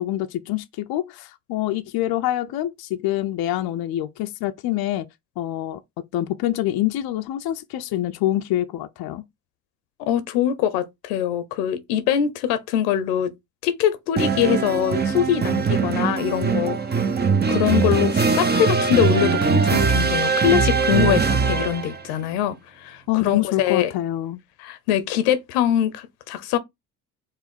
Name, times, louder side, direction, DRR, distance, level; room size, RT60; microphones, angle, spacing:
voice 1, 0.0-5.1 5.4-5.8 6.1-9.2 23.1-24.4, left 14 dB, 55° left, 0.6 m, -25 dB
voice 2, 10.0-13.3 13.6-16.8 17.5-22.6 22.8-23.9 24.6-26.6, left 10 dB, 80° left, 0.9 m, -23 dB
sound 1, 14.2-22.0, right 5 dB, 20° right, 0.7 m, -21 dB
4.8 x 2.5 x 4.3 m
hypercardioid pair, 60°, 45 cm